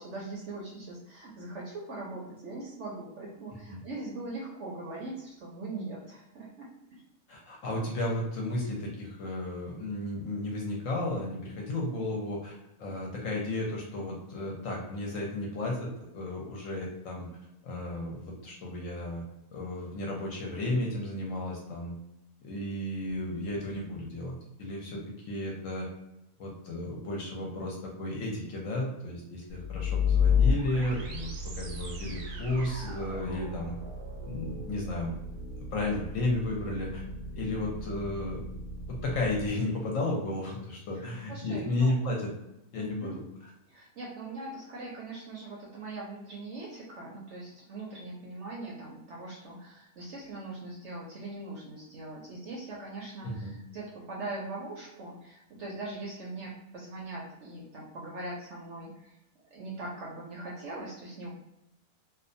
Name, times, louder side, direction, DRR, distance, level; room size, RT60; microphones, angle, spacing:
voice 1, 0.0-7.0 30.5-30.8 40.9-41.0 41.3-42.1 42.8-43.2 43.7-59.2 59.5-61.3, right 2 dB, 65° right, -3 dB, 0.8 m, -41 dB
voice 2, 7.3-17.3 17.6-19.2 19.5-21.9 22.4-25.9 26.4-33.8 34.3-35.1 35.6-37.0 37.3-38.4 38.9-42.3 42.7-43.5 53.2-53.5, left 1 dB, 65° left, -1 dB, 0.9 m, -33 dB
sound 1, 29.5-39.5, left 5 dB, 85° right, 1.1 m, -32 dB
2.6 x 2.2 x 2.5 m, 0.87 s
omnidirectional pair, 1.6 m